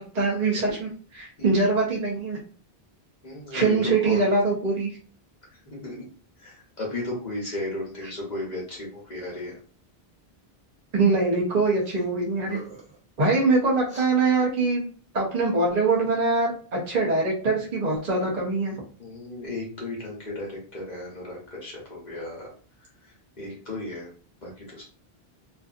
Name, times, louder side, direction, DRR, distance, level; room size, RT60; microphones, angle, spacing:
voice 1, 0.0-2.4 3.5-4.9 10.9-12.6 13.2-14.8 15.1-18.7, right 3 dB, 45° right, -4 dB, 0.7 m, -23 dB
voice 2, 3.2-4.3 5.7-5.9 6.4-9.6 19.0-22.5 23.4-24.1 24.4-24.8, left 2 dB, 45° left, -3 dB, 0.9 m, -34 dB
sound 1, 11.8-12.1 12.4-13.0 13.9-14.1, right 1 dB, 5° right, 1.0 m, -44 dB
2.5 x 2.5 x 2.4 m, 0.42 s
omnidirectional pair, 1.0 m